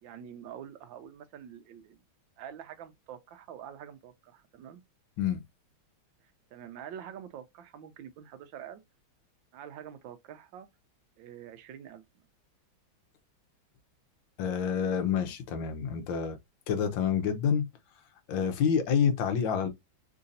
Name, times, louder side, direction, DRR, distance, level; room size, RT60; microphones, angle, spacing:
voice 1, 0.0-2.0 2.4-4.8 6.2-8.8 9.5-10.7 11.2-12.0, right 9 dB, 75° right, 1.3 m, -46 dB
voice 2, 14.4-16.4 16.7-17.7 18.3-19.7, left 7 dB, 75° left, 1.5 m, -28 dB
3.8 x 2.6 x 2.5 m
omnidirectional pair, 2.2 m